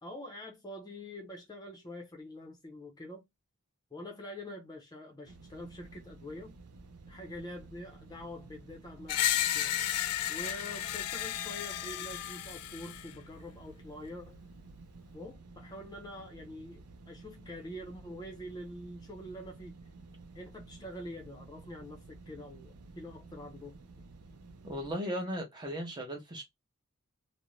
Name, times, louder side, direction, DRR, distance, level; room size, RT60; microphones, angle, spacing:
voice 1, 0.0-3.2 3.9-6.6 7.1-9.8 10.3-14.4 15.1-19.8 20.3-23.9, left 1 dB, 20° left, 0.6 m, -45 dB
sound 1, 5.3-24.9, right 3 dB, 80° right, 0.5 m, -53 dB
Screech, 9.1-13.1, left 12 dB, 85° left, 0.3 m, -33 dB
voice 2, 24.6-26.4, equal, 20° right, 0.7 m, -36 dB
2.5 x 2.1 x 3.0 m
head